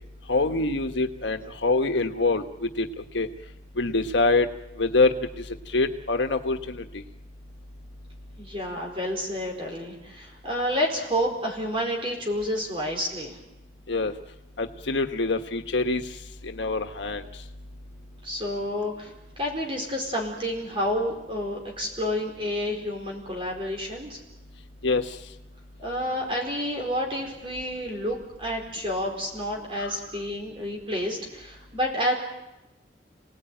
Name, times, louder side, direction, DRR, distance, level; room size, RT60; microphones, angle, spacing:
voice 1, 0.3-3.3 3.8-4.5 4.8-5.1 5.7-6.8 13.9-14.1 14.6-16.0 16.4-17.2 24.8-25.1 29.8-29.9, left 3 dB, 85° left, 6 dB, 1.3 m, -25 dB
voice 2, 8.4-13.4 18.2-19.1 19.4-24.2 25.8-32.1, equal, 30° right, 1 dB, 4.6 m, -29 dB
29.5 x 19.0 x 9.2 m, 0.97 s
head